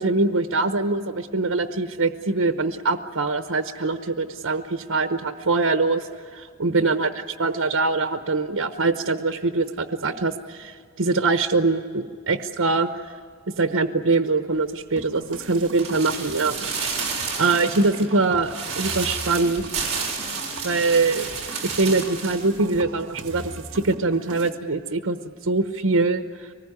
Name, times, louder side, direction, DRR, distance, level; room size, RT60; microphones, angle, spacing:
voice 1, 0.0-7.1 7.4-13.2 13.6-16.6 17.4-19.6 20.6-21.3 21.6-25.2 25.4-26.5, right 3 dB, 80° right, 7 dB, 1.0 m, -23 dB
sound 1, 15.0-24.5, right 2 dB, 60° right, 1.8 m, -40 dB
sound 2, 15.8-22.5 22.7-22.8, right 5 dB, 30° right, 4.5 m, -31 dB
24.5 x 20.5 x 9.7 m, 2.1 s
head